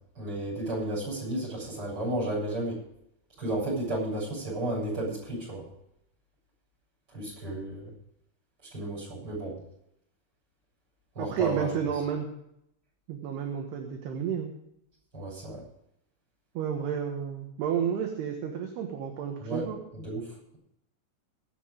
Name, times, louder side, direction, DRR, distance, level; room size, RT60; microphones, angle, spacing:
voice 1, 0.2-2.8 3.4-5.6 7.1-7.9 8.7-9.6 11.2-11.7 15.1-15.6 19.4-19.6 19.9-20.2, right 1 dB, 20° right, -5 dB, 7.8 m, -32 dB
voice 2, 11.2-12.3 13.1-14.5 16.5-19.8, right 8 dB, 65° right, 3 dB, 3.0 m, -31 dB
22.0 x 7.9 x 5.0 m, 0.77 s
omnidirectional pair, 5.7 m